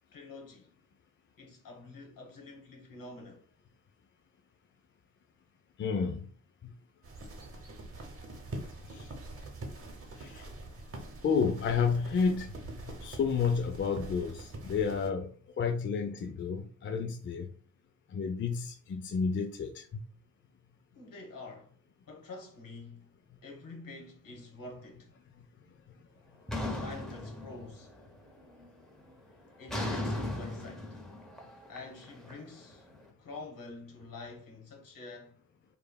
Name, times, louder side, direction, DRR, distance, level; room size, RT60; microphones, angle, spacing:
voice 1, 0.1-0.7 1.4-3.4 20.9-21.7 22.0-23.1 23.4-25.1 26.6-27.9 29.6-31.0 31.7-32.9 33.2-35.4, left 3 dB, 60° left, 1.2 m, -47 dB
voice 2, 5.8-6.3 6.6-6.7 8.8-9.1 10.2-10.6 11.2-17.5 18.1-20.0, left 5 dB, 35° left, 0.4 m, -31 dB
sound 1, 7.0-15.1, right 2 dB, 35° right, 0.8 m, -44 dB
sound 2, 26.5-28.0 28.4-28.8 29.7-32.8, left 1 dB, ahead, 0.8 m, -37 dB
3.1 x 2.2 x 2.2 m
supercardioid pair, 55°, 39 cm